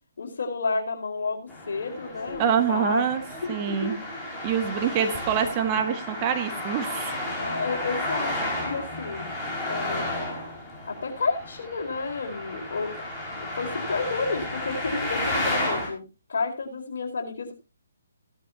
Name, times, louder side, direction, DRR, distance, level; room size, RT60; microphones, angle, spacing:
voice 1, 0.2-3.0 3.4-3.5 3.8-3.9 7.4-8.3 8.6-9.3 9.6-10.1 10.8-12.9 13.3-16.0 16.3-17.5, left 4 dB, 60° left, 2 dB, 4.4 m, -30 dB
Traffic noise roadway noise, 1.5-15.9, left 1 dB, ahead, 5.1 m, -32 dB
voice 2, 2.4-3.2 3.5-4.0 4.4-7.1, right 8 dB, 25° right, 6 dB, 1.7 m, -25 dB
16.5 x 12.0 x 2.8 m, 0.29 s
figure-of-eight pair, 140°, 0 cm